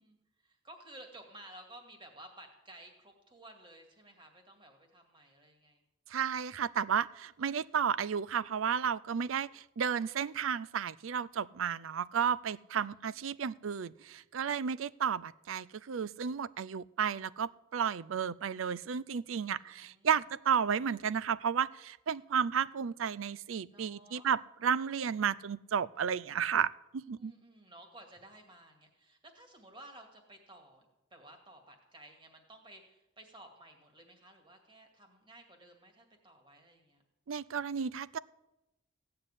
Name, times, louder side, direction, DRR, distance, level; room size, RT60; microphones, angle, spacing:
voice 1, 0.0-5.8 12.6-13.6 19.3-20.1 23.7-24.3 27.1-30.9 31.1-37.0, right 1 dB, 25° right, 3 dB, 2.3 m, -55 dB
voice 2, 6.1-27.3 37.3-38.2, right 7 dB, 90° right, 20 dB, 0.5 m, -33 dB
16.0 x 6.7 x 9.8 m, 0.93 s
head